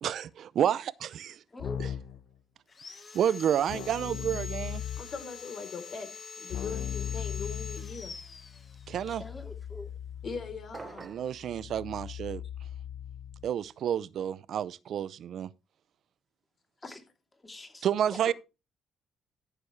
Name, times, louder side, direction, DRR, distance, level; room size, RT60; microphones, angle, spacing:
voice 1, 0.0-1.4 1.8-1.9 3.1-4.8 8.9-9.2 11.0-12.4 13.4-15.5 17.8-18.3, right 9 dB, 65° right, 0.6 m, -30 dB
Keyboard (musical), 1.6-2.2 3.7-5.3 6.5-13.5, left 9 dB, 80° left, 0.5 m, -39 dB
Sawing, 2.7-9.2, left 5 dB, 35° left, 2.2 m, -45 dB
voice 2, 5.0-8.1 10.2-11.1, left 5 dB, 55° left, 3.5 m, -40 dB
voice 3, 9.1-9.9 16.8-17.0 17.4-18.2, left 2 dB, 20° left, 2.9 m, -44 dB
sound 1, 10.7-11.4, right 4 dB, 35° right, 0.8 m, -44 dB
14.0 x 6.9 x 3.2 m
cardioid pair, 90°, 0 cm